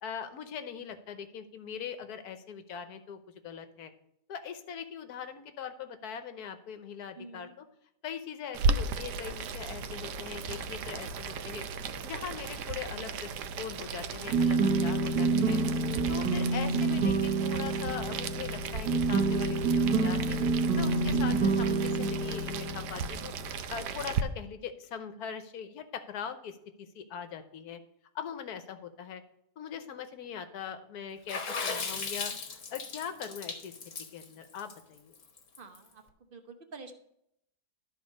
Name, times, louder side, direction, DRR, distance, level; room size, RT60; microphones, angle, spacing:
voice 1, 0.0-3.9 4.3-7.7 8.0-11.6 12.0-15.6 16.1-20.4 20.8-23.3 23.7-27.8 28.1-29.2 29.6-33.7 34.1-35.1, left 7 dB, 70° left, 9 dB, 1.3 m, -41 dB
voice 2, 7.2-7.5 35.6-36.0 36.3-36.9, right 4 dB, 40° right, 6 dB, 0.8 m, -47 dB
Boiling, 8.5-24.2, right 4 dB, 90° right, 1.2 m, -36 dB
sound 1, 14.3-23.6, right 3 dB, 75° right, 2.0 m, -28 dB
Water / Splash splatter, 31.3-35.8, left 4 dB, 50° left, 1.4 m, -37 dB
12.5 x 4.3 x 5.2 m, 0.76 s
omnidirectional pair, 1.7 m